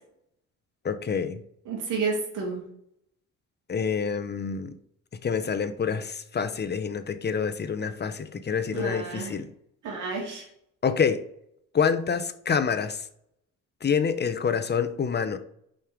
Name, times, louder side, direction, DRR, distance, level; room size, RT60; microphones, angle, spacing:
voice 1, 0.8-1.4 3.7-4.8 5.2-9.5 10.8-11.2 11.7-13.0 13.8-15.4, left 6 dB, 35° left, 10 dB, 0.8 m, -27 dB
voice 2, 1.7-2.6 8.7-9.3 9.8-10.4, right 4 dB, 85° right, -2 dB, 2.5 m, -30 dB
5.6 x 5.6 x 5.1 m, 0.71 s
cardioid pair, 90°, 30 cm